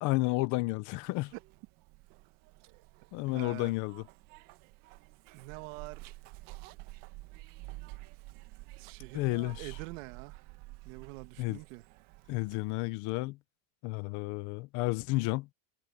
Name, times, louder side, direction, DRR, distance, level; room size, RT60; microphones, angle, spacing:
voice 1, 0.0-1.3 3.1-4.0 9.1-9.7 11.4-11.6 12.3-13.4 13.8-15.5, left 21 dB, 50° left, 0.8 m, -31 dB
Zipper (clothing), 1.0-12.7, right 19 dB, 55° right, 1.6 m, -50 dB
voice 2, 3.3-3.7 5.3-6.1 8.7-10.4 10.8-11.9, right 21 dB, 90° right, 1.7 m, -45 dB
cardioid pair, 180°, 38 cm